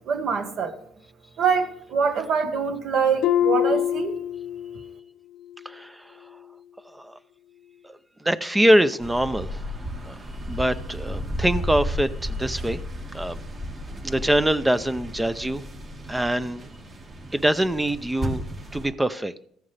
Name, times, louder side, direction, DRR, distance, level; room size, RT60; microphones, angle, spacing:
voice 1, 0.1-0.8 1.4-4.2, right 6 dB, 55° right, 1.6 m, -24 dB
Harp, 3.2-5.0 5.3-5.8 6.3-6.4, left 10 dB, 70° left, 0.5 m, -25 dB
voice 2, 5.6-6.0 7.0-7.2 7.8-8.0 8.2-9.6 10.1-10.2 10.5-12.8 13.1-13.4 14.0-15.6 16.1-16.6 17.3-18.4 18.7-19.3, right 1 dB, 10° right, 0.5 m, -23 dB
sound 1, 9.0-18.9, equal, 35° right, 2.2 m, -33 dB
15.0 x 9.4 x 3.4 m
cardioid pair, 120°, 0 cm